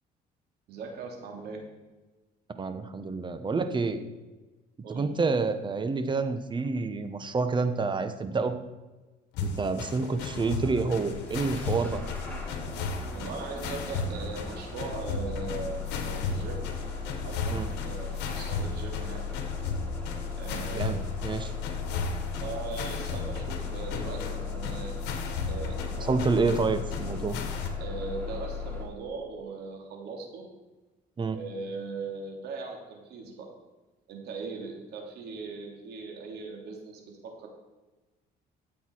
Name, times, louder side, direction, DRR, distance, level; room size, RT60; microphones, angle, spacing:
voice 1, 0.7-1.7 4.8-5.0 13.1-16.6 17.2-19.3 20.4-20.9 22.4-24.9 25.5-26.2 27.8-30.5 31.3-33.5 34.1-37.5, right 4 dB, 75° right, 2 dB, 2.8 m, -39 dB
voice 2, 2.6-4.0 4.9-8.6 9.4-12.0 17.5-17.7 20.7-21.0 21.2-21.5 26.0-27.4 31.2-31.4, right 4 dB, 30° right, 9 dB, 1.1 m, -28 dB
sound 1, 9.3-27.7, left 3 dB, 85° left, 1.7 m, -36 dB
Bus / Engine starting, 10.2-28.8, left 5 dB, 10° left, 3.1 m, -37 dB
13.0 x 8.2 x 4.7 m, 1.2 s
cardioid pair, 110°, 17 cm